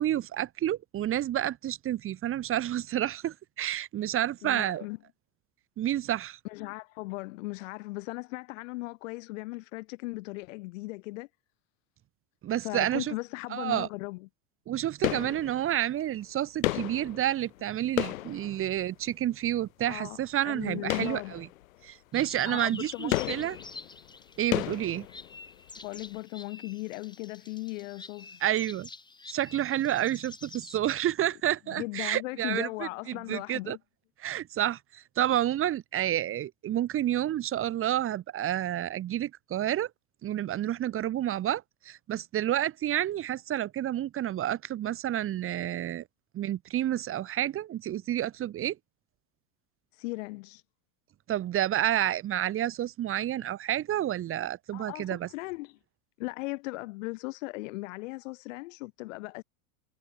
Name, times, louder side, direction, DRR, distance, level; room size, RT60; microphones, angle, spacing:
voice 1, 0.0-4.8 5.8-6.4 12.4-13.1 13.5-13.9 14.7-21.5 21.8-23.5 24.4-25.1 28.4-28.9 29.3-32.7 33.1-33.8 34.2-39.9 40.2-46.0 46.3-48.8 51.3-55.3, right 12 dB, 30° right, 2.5 m, -29 dB
voice 2, 4.4-5.0 6.4-11.3 12.6-14.3 19.9-21.3 22.5-23.3 25.8-28.4 31.7-33.8 49.9-50.6 54.7-55.8 56.2-59.4, left 22 dB, 70° left, 7.6 m, -37 dB
sound 1, 15.0-15.9 16.6-19.2 20.8-21.8 22.2-22.3 23.1-25.7 25.9-26.0, left 15 dB, 85° left, 3.6 m, -33 dB
sound 2, 22.1-30.8, left 3 dB, 10° left, 7.1 m, -48 dB
supercardioid pair, 135°, 40 cm